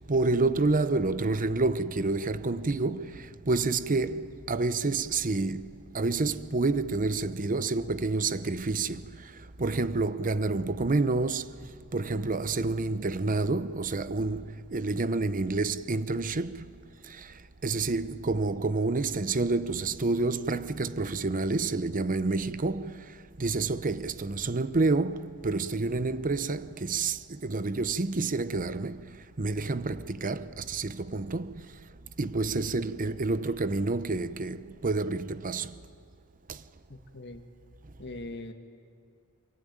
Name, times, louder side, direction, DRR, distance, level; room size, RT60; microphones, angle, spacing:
voice 1, 0.1-9.3 9.6-11.5 11.9-16.7 17.0-17.4 17.6-23.1 23.4-29.1 29.4-31.7 32.2-35.7 36.5-36.6, right 3 dB, 40° right, 0.8 m, -29 dB
voice 2, 36.9-37.4 38.0-38.5, left 2 dB, 50° left, 1.5 m, -41 dB
25.0 x 23.0 x 9.4 m
head